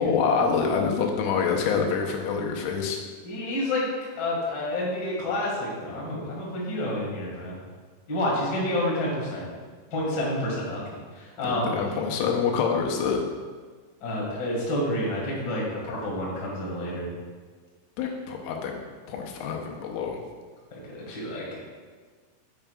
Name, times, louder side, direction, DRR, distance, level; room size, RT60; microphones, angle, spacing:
voice 1, 0.0-3.0 11.5-13.2 18.0-18.7 19.1-20.2, left 6 dB, 85° left, 1 dB, 3.3 m, -26 dB
voice 2, 3.2-3.8 4.1-7.6 8.1-9.5 9.9-11.7 14.0-17.1 20.7-21.5, left 1 dB, 60° left, -5 dB, 1.1 m, -29 dB
8.9 x 8.4 x 2.4 m, 1.5 s
omnidirectional pair, 5.6 m